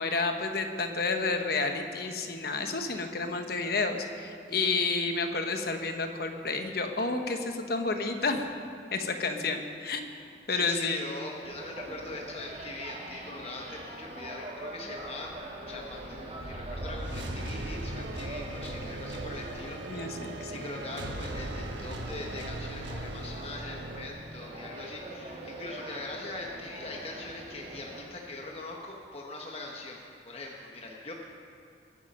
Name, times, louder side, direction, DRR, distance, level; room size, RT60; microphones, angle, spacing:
voice 1, 0.0-8.4 8.9-10.0 10.5-11.1 19.9-20.5, left 3 dB, 55° left, 5 dB, 1.1 m, -30 dB
voice 2, 10.5-15.3 15.7-30.0 30.2-31.1, left 2 dB, 30° left, 0 dB, 1.1 m, -42 dB
sound 1, 11.4-28.1, right 1 dB, 35° right, 2.1 m, -43 dB
sound 2, 15.0-24.1, right 1 dB, 75° right, 1.2 m, -39 dB
21.5 x 8.7 x 5.3 m, 2.4 s
head